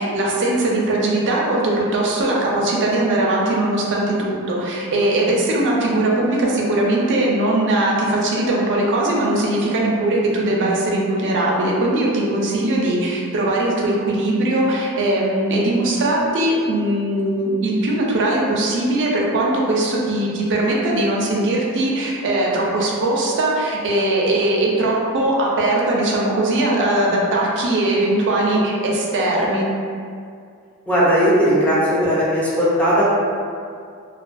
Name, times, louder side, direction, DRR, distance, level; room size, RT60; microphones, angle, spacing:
voice 1, 0.0-29.7, right 1 dB, 55° right, -3 dB, 0.4 m, -20 dB
voice 2, 30.9-33.0, equal, 5° left, -9 dB, 0.6 m, -17 dB
2.3 x 2.3 x 2.5 m, 2.3 s
head